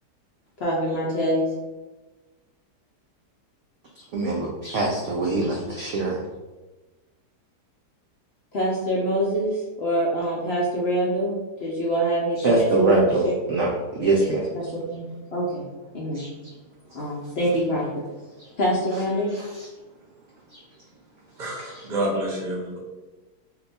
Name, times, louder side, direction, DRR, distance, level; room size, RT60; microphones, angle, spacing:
voice 1, 0.6-1.4 8.5-13.3 14.5-15.7 15.9-16.2 16.9-18.0 18.6-19.3, equal, 70° left, -4 dB, 0.6 m, -25 dB
voice 2, 4.1-6.2 12.4-14.5 16.1-16.3 20.5-20.6, right 2 dB, 75° right, -2 dB, 0.7 m, -23 dB
voice 3, 21.4-22.8, right 1 dB, 40° right, -3 dB, 0.7 m, -28 dB
2.7 x 2.2 x 4.0 m, 1.2 s
omnidirectional pair, 1.8 m